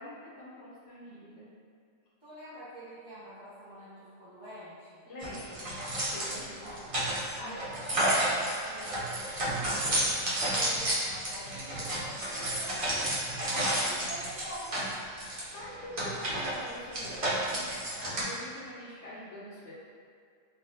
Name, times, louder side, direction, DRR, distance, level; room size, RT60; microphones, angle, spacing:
voice 1, 0.0-1.5 5.1-5.8 6.1-6.9 7.3-7.6 10.4-10.9 13.5-14.0 15.3-17.2 17.5-19.7, left 1 dB, 65° left, -7 dB, 0.8 m, -45 dB
voice 2, 2.2-5.0 6.3-6.8 7.4-10.2 10.5-13.2 13.5-14.7, right 1 dB, 25° right, -14 dB, 0.8 m, -46 dB
sound 1, 5.2-18.2, right 1 dB, 55° right, 0.3 m, -31 dB
3.3 x 2.1 x 2.6 m, 2.2 s
omnidirectional pair, 1.4 m